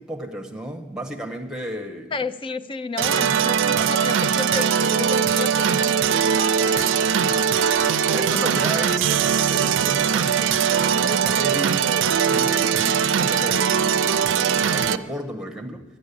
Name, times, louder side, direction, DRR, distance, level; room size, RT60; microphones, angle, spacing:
voice 1, 0.0-2.2 3.1-3.9 8.1-15.8, right 1 dB, 5° right, 2 dB, 1.2 m, -33 dB
voice 2, 2.1-7.8, left 4 dB, 25° left, 12 dB, 0.4 m, -32 dB
sound 1, 3.0-15.0, right 7 dB, 80° right, 0.5 m, -21 dB
sound 2, 7.8-9.3, equal, 85° left, 5.2 m, -44 dB
11.5 x 10.0 x 8.4 m, 1.2 s
head